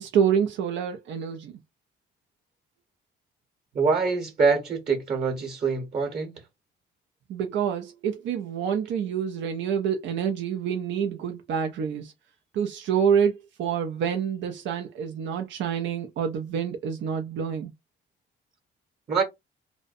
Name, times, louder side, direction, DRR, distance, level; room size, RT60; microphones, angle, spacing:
voice 1, 0.0-1.5 7.3-12.1 12.5-17.7, right 7 dB, 70° right, 0.4 m, -27 dB
voice 2, 3.7-6.3 19.1-19.2, right 4 dB, 35° right, 0.9 m, -24 dB
2.5 x 2.0 x 2.4 m
cardioid pair, 90°, 20 cm